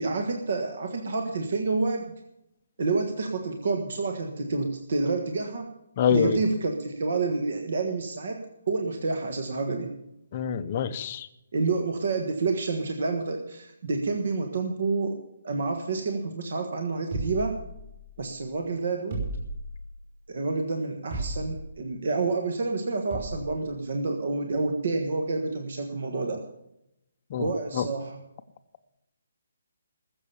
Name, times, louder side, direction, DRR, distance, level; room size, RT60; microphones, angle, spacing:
voice 1, 0.0-2.0 2.8-5.7 6.1-9.9 11.5-15.2 15.4-17.6 18.2-19.2 20.3-26.4 27.4-28.2, right 3 dB, 50° right, 4 dB, 1.5 m, -28 dB
voice 2, 6.0-6.4 10.3-11.3 27.3-27.9, left 8 dB, 25° left, 10 dB, 0.7 m, -26 dB
sound 1, 17.1-18.2 19.1-20.0 21.1-21.8 23.1-23.6, right 2 dB, 30° right, 5.4 m, -34 dB
20.0 x 7.3 x 7.0 m, 0.85 s
hypercardioid pair, 175°, 0 cm